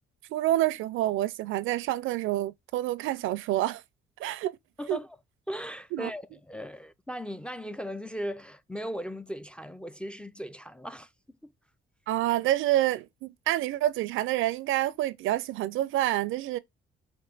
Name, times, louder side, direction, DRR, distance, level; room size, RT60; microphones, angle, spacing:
voice 1, 0.3-3.8 4.2-4.6 4.9-5.0 5.9-6.1 12.1-16.6, right 14 dB, 85° right, 0.4 m, -28 dB
voice 2, 4.8-5.2 5.5-11.1 11.4-11.5, equal, 5° left, 0.3 m, -37 dB
4.5 x 2.6 x 3.8 m
cardioid pair, 90°, 20 cm